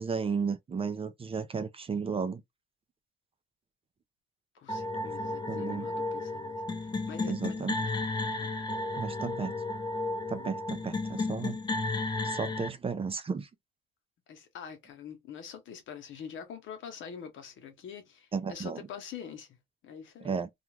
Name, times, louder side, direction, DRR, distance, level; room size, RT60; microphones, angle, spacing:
voice 1, 0.0-2.4 5.5-5.9 7.3-7.7 9.0-9.6 10.3-11.6 12.2-13.5 18.3-18.8 20.2-20.5, right 5 dB, 30° right, 0.4 m, -33 dB
voice 2, 4.5-7.9 8.6-8.7 14.3-19.5 19.8-20.4, left 7 dB, 75° left, 0.9 m, -45 dB
sound 1, 4.7-12.7, left 2 dB, 20° left, 0.5 m, -33 dB
2.4 x 2.3 x 3.1 m
cardioid pair, 90°, 20 cm